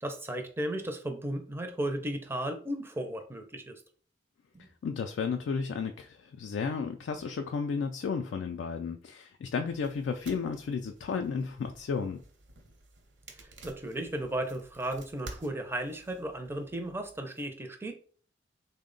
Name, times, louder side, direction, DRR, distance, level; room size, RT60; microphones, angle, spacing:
voice 1, 0.0-3.8 4.5-4.7 13.4-17.9, right 1 dB, 15° right, 5 dB, 0.4 m, -35 dB
voice 2, 4.8-12.2, left 5 dB, 70° left, 5 dB, 0.3 m, -33 dB
sound 1, 9.7-17.2, right 2 dB, 70° right, 0.8 m, -52 dB
3.5 x 2.1 x 3.7 m, 0.43 s
head